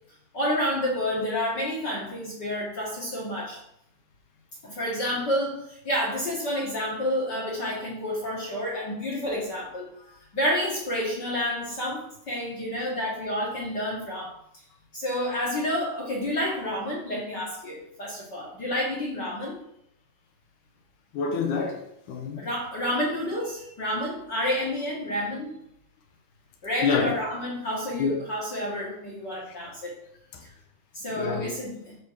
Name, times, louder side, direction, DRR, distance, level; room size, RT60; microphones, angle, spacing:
voice 1, 0.3-3.6 4.6-14.3 14.9-19.7 22.4-25.6 26.6-30.0 30.9-32.0, left 1 dB, 40° left, 1.8 m, -29 dB
voice 2, 21.1-22.4 26.8-27.1 28.0-28.2 30.3-30.4 31.1-31.5, left 5 dB, 65° left, 2.3 m, -27 dB
13.5 x 5.1 x 4.6 m
omnidirectional pair, 4.3 m